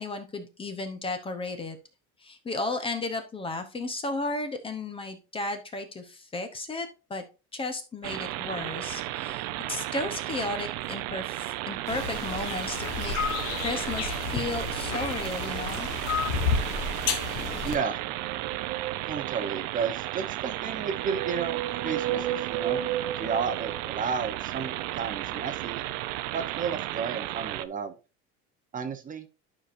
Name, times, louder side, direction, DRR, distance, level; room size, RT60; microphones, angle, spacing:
voice 1, 0.0-1.8 2.2-7.2 7.5-13.2 13.6-15.9, left 2 dB, 20° left, 8 dB, 0.8 m, -34 dB
sound 1, 8.0-27.6, right 15 dB, 70° right, 0.6 m, -34 dB
sound 2, 11.9-17.7, left 5 dB, 55° left, 1.3 m, -31 dB
voice 2, 17.6-18.0 19.1-22.8 23.2-25.8 26.3-27.9 28.7-29.3, right 6 dB, 25° right, 7 dB, 0.9 m, -32 dB
sound 3, 18.0-19.6 20.5-24.4, right 11 dB, 85° right, 1.0 m, -34 dB
11.5 x 5.0 x 2.6 m, 0.30 s
cardioid pair, 145°, 30 cm